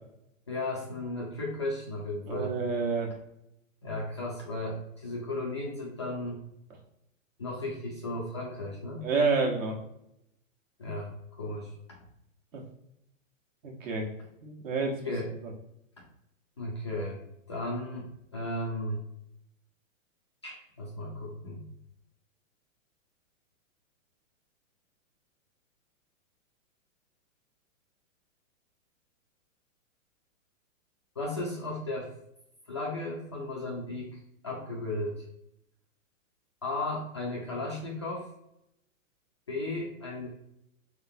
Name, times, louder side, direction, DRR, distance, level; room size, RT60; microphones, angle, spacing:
voice 1, 0.5-2.5 3.8-6.4 7.4-9.0 10.8-11.7 15.0-15.3 16.6-17.2 17.5-19.0 20.4-21.6 31.2-32.1 32.7-35.2 36.6-38.3 39.5-40.3, left 2 dB, 25° left, -4 dB, 0.4 m, -35 dB
voice 2, 2.3-3.1 9.0-9.8 12.5-12.6 13.6-14.1 14.4-15.0 15.4-15.5, right 4 dB, 70° right, 0 dB, 1.5 m, -29 dB
4.7 x 3.6 x 2.7 m, 0.80 s
hypercardioid pair, 170°, 41 cm